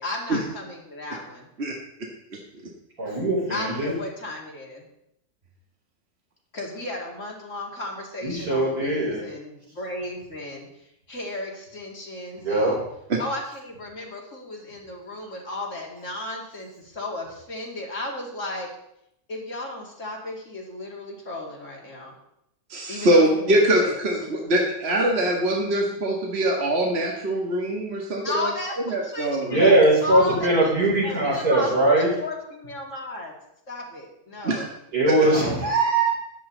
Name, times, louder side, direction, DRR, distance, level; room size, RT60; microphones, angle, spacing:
voice 1, 0.0-1.5 3.5-4.8 6.5-10.7 11.1-12.8 13.2-18.7 19.3-22.1 22.9-24.0 28.2-30.7 31.0-33.3 33.7-34.7 35.1-35.6, left 2 dB, 50° left, -1 dB, 2.9 m, -34 dB
voice 2, 3.0-3.9 8.2-9.2 12.4-12.8 29.5-32.1 34.9-36.1, right 2 dB, 75° right, -4 dB, 5.2 m, -21 dB
voice 3, 22.7-28.5 28.9-29.6 34.4-34.6 35.1-35.2, right 1 dB, 45° right, -1 dB, 2.0 m, -23 dB
14.5 x 10.5 x 4.0 m, 0.77 s
omnidirectional pair, 1.6 m